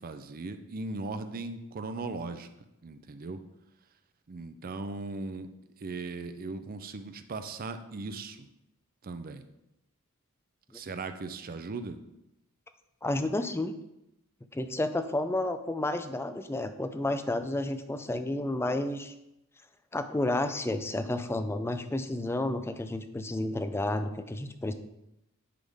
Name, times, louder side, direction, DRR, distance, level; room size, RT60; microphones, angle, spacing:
voice 1, 0.0-2.5 2.8-3.4 4.3-5.5 5.8-8.4 9.0-9.4 10.7-12.0, right 3 dB, 45° right, 9 dB, 0.5 m, -38 dB
voice 2, 13.0-13.7 14.5-19.1 19.9-24.7, left 1 dB, 10° left, 9 dB, 0.4 m, -31 dB
10.0 x 3.7 x 3.5 m, 0.89 s
head